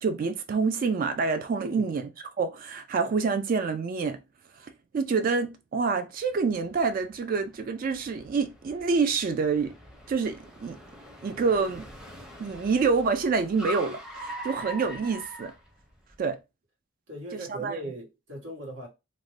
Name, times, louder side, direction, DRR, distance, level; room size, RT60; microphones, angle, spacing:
voice 1, 0.0-2.0 2.4-4.2 4.6-9.8 10.1-10.8 11.2-11.9 12.4-15.5 16.2-16.4 17.3-17.8, right 4 dB, 45° right, 0.3 m, -27 dB
voice 2, 1.6-2.0 17.1-18.9, right 1 dB, 85° right, 1.2 m, -38 dB
Car, 6.3-16.2, equal, 5° right, 0.6 m, -43 dB
2.5 x 2.1 x 3.1 m
head